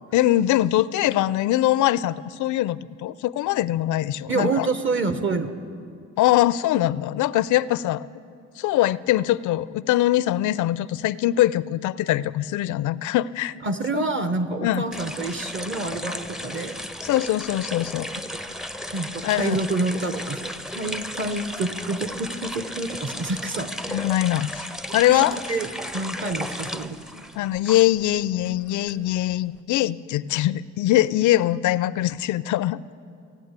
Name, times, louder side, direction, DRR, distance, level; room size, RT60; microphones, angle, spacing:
voice 1, 0.1-4.7 6.2-8.1 8.6-13.5 13.9-14.0 14.6-14.8 17.0-18.1 19.2-19.6 23.9-24.7 24.9-25.4 27.4-32.8, left 14 dB, 75° left, 18 dB, 0.4 m, -22 dB
voice 2, 4.3-5.5 13.6-16.8 18.1-18.2 18.9-24.0 24.9-25.7 25.9-27.2, right 3 dB, 40° right, 10 dB, 0.9 m, -28 dB
sound 1, 14.9-28.1 28.4-29.6, equal, ahead, 0.4 m, -34 dB
16.0 x 9.0 x 8.1 m, 2.4 s
cardioid pair, 90°, 30 cm